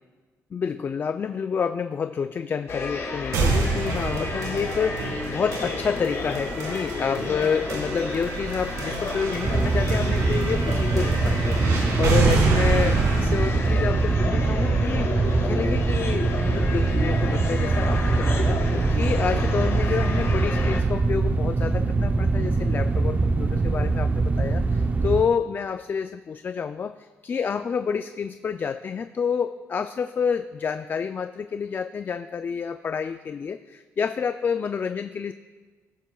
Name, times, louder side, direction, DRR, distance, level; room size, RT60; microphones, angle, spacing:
voice 1, 0.5-18.6 18.9-35.3, left 6 dB, 40° left, 10 dB, 0.4 m, -28 dB
sound 1, 2.7-20.8, left 3 dB, 55° left, 1.9 m, -32 dB
sound 2, 3.3-15.3, right 4 dB, 75° right, 2.0 m, -28 dB
sound 3, 9.4-25.2, right 3 dB, 30° right, 0.6 m, -23 dB
15.0 x 13.5 x 2.3 m, 1.4 s
cardioid pair, 100°, 6 cm